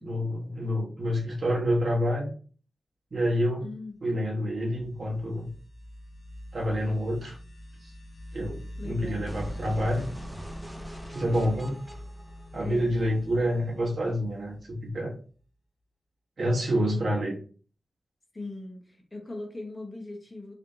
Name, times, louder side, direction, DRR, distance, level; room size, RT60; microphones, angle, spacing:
voice 1, 0.0-2.3 3.1-3.7 4.0-5.5 6.5-7.4 7.8-7.9 8.3-10.1 11.1-11.8 12.5-15.1 16.4-17.4, equal, 60° right, -3 dB, 1.2 m, -28 dB
voice 2, 3.6-4.0 8.8-9.3 12.6-12.9 18.3-20.5, left 2 dB, 25° left, 0 dB, 1.2 m, -40 dB
sound 1, 4.4-15.0, equal, 50° left, 0.4 m, -43 dB
sound 2, 9.3-13.2, right 1 dB, 10° right, 0.7 m, -43 dB
3.2 x 2.9 x 2.7 m, 0.41 s
cardioid pair, 55°, 0 cm